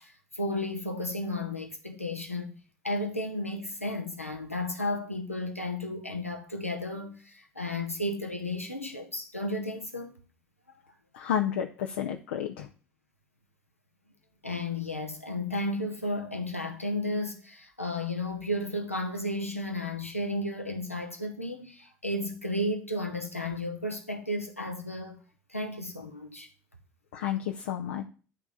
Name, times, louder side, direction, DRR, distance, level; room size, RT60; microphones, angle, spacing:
voice 1, 0.0-2.5 2.8-10.2 14.4-25.2 25.5-26.5, left 1 dB, 90° left, 0.9 m, -33 dB
voice 2, 11.1-12.7 27.1-28.1, left 9 dB, 70° left, 0.6 m, -31 dB
10.5 x 3.5 x 7.0 m
figure-of-eight pair, 55°, 7 cm